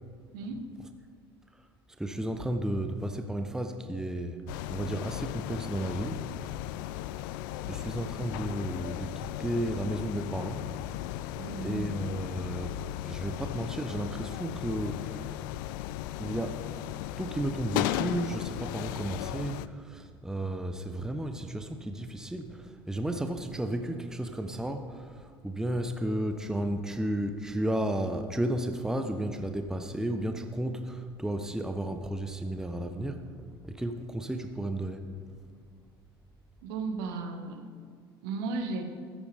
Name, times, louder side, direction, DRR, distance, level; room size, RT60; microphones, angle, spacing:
voice 1, 0.3-0.7 11.4-11.9 36.6-37.6 38.2-38.8, right 4 dB, 60° right, 5 dB, 1.6 m, -35 dB
voice 2, 2.0-4.4 4.7-6.2 7.7-9.1 9.4-10.6 11.6-12.7 13.0-15.2 16.2-16.6 17.2-33.2 33.6-35.0, right 1 dB, 5° right, 7 dB, 0.9 m, -33 dB
sound 1, 4.5-19.7, left 14 dB, 60° left, 0.4 m, -36 dB
15.5 x 14.0 x 3.5 m, 2.1 s
figure-of-eight pair, 65°, 13 cm